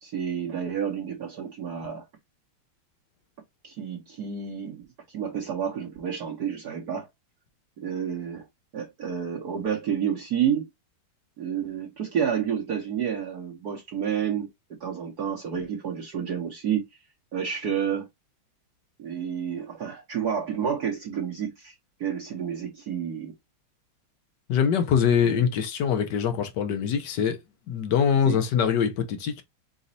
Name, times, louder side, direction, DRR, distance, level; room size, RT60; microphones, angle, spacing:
voice 1, 0.0-2.1 3.6-7.1 7.8-8.5 8.7-10.7 11.4-14.5 14.8-16.8 17.3-18.1 19.0-21.7 22.0-23.3 25.2-25.5 28.2-28.4, right 8 dB, 55° right, 1.2 m, -30 dB
voice 2, 24.5-27.4 27.7-29.4, left 7 dB, 65° left, 1.3 m, -23 dB
4.1 x 3.9 x 2.6 m
omnidirectional pair, 2.3 m